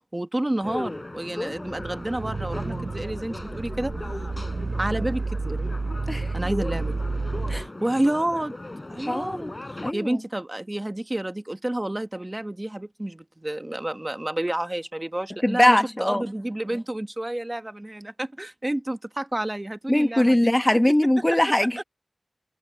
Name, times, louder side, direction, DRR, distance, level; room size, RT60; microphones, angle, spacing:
voice 1, 0.1-3.9 4.8-5.6 6.3-7.0 7.5-8.5 8.9-9.4 9.9-20.5 21.3-21.4 21.8-21.9, right 1 dB, 25° right, 1.2 m, -29 dB
sound 1, 0.6-9.9, left 2 dB, 35° left, 6.1 m, -37 dB
sound 2, 1.6-7.7, right 3 dB, 75° right, 0.7 m, -30 dB
voice 2, 9.1-9.5 9.8-10.2 15.4-16.3 19.9-21.8, left 1 dB, 20° left, 1.1 m, -21 dB
wide cardioid pair, 65°, 0 cm